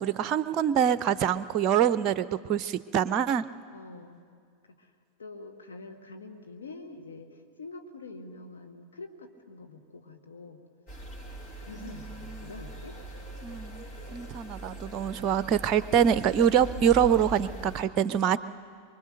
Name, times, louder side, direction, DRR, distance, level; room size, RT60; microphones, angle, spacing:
voice 1, 0.0-3.5 11.8-12.5 13.4-13.8 14.1-18.4, right 9 dB, 35° right, 15 dB, 0.5 m, -25 dB
voice 2, 3.7-4.3 4.7-4.9 5.2-7.3 7.6-10.6 11.6-13.0, left 3 dB, 70° left, 6 dB, 1.8 m, -45 dB
sound 1, 10.9-17.8, right 2 dB, 30° left, 4.3 m, -41 dB
24.5 x 23.0 x 6.6 m, 2.1 s
figure-of-eight pair, 90°, 0 cm